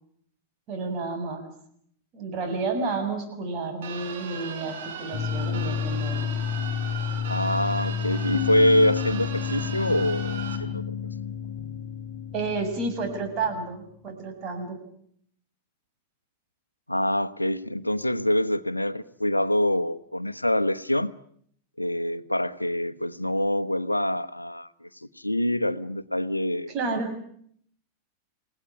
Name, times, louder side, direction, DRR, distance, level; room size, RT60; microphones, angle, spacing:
voice 1, 0.7-1.5 2.1-6.3 12.3-14.8 26.7-27.3, right 3 dB, 35° right, 7.4 m, -31 dB
sound 1, 3.8-10.6, right 7 dB, 55° right, 4.4 m, -38 dB
sound 2, 5.1-13.9, left 8 dB, 50° left, 1.5 m, -30 dB
voice 2, 7.3-11.0 16.9-21.1 21.8-24.9 25.2-26.7, left 1 dB, 85° left, 1.0 m, -25 dB
29.5 x 17.5 x 10.0 m
figure-of-eight pair, 90°, 0 cm